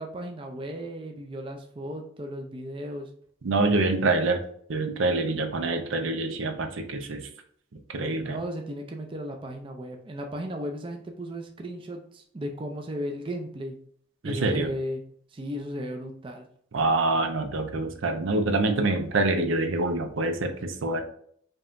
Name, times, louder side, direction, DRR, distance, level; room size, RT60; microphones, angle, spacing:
voice 1, 0.0-3.1 8.3-13.8 14.2-15.0 15.3-16.5, equal, 25° right, 3 dB, 0.4 m, -35 dB
voice 2, 3.4-4.4 4.7-7.3 7.9-8.4 14.2-14.7 16.7-21.0, right 2 dB, 75° right, 6 dB, 0.6 m, -26 dB
5.2 x 2.8 x 2.5 m, 0.62 s
head